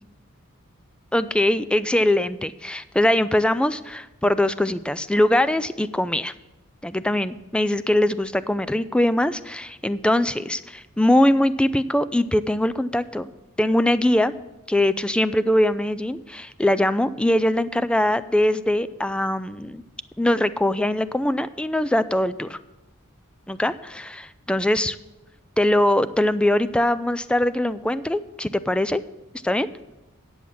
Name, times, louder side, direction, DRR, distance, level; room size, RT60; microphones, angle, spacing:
voice 1, 1.1-6.3 6.8-13.3 13.6-14.3 14.7-19.8 20.2-22.6 23.5-25.0 25.6-29.0 29.4-29.7, left 1 dB, 5° left, 14 dB, 0.3 m, -22 dB
10.0 x 7.1 x 6.2 m, 1.0 s
head